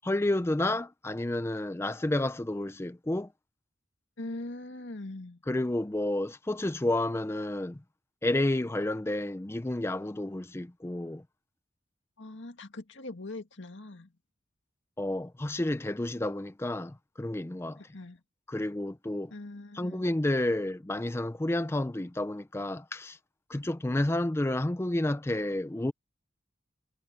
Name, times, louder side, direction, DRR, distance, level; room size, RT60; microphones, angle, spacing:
voice 1, 0.0-3.3 5.5-7.8 8.2-11.2 15.0-17.8 18.5-19.3 19.7-23.2 23.5-25.9, left 1 dB, 15° left, 0.4 m, -30 dB
voice 2, 4.2-5.4 12.2-14.1 17.8-18.2 19.3-20.0, left 2 dB, 80° left, 1.9 m, -41 dB
head